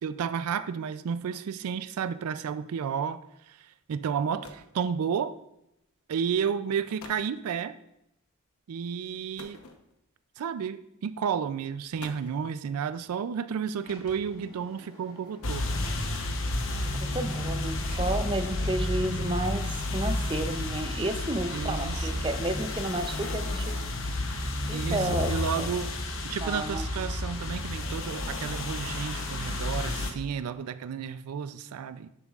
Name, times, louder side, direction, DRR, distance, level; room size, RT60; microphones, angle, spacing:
voice 1, 0.0-3.2 3.5-5.4 6.1-7.8 8.7-9.6 10.4-15.7 21.5-22.3 24.7-25.9 26.2-32.1, right 7 dB, 90° right, 0.4 m, -32 dB
sound 1, 3.8-3.9 4.2-4.8 5.8-6.0 6.6-6.7 7.0-7.3 9.4-10.2 11.2-11.3 11.8-12.5 13.7-14.2 15.1-16.1, left 2 dB, 90° left, 0.9 m, -48 dB
Sliding door, 13.8-16.1 17.8-18.9, left 1 dB, 40° left, 1.4 m, -48 dB
sound 2, 15.4-30.1, left 2 dB, 60° left, 0.9 m, -31 dB
voice 2, 16.7-23.8 24.7-25.7 26.4-26.9, right 1 dB, 20° right, 0.5 m, -32 dB
10.5 x 7.0 x 2.4 m
head